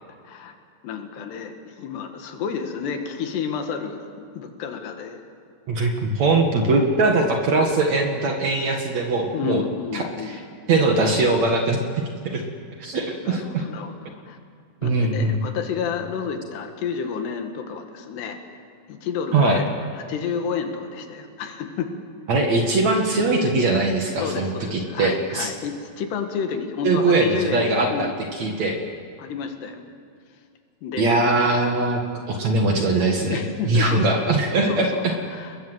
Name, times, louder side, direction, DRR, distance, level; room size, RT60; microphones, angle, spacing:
voice 1, 0.8-4.0 4.3-5.2 5.8-5.9 9.3-10.4 13.2-14.0 14.3-14.4 14.8-18.4 18.9-19.7 19.9-21.9 24.2-28.2 29.2-29.9 30.8-31.6 33.2-34.3 34.7-35.6, left 6 dB, 75° left, 6 dB, 3.9 m, -30 dB
voice 2, 5.7-9.6 9.9-10.4 10.7-11.8 12.2-12.4 12.8-13.6 14.8-15.4 19.3-19.6 22.3-25.5 26.8-28.8 31.0-32.0 32.3-35.1, right 2 dB, 50° right, 3 dB, 2.5 m, -21 dB
29.0 x 21.0 x 8.0 m, 2.1 s
omnidirectional pair, 4.8 m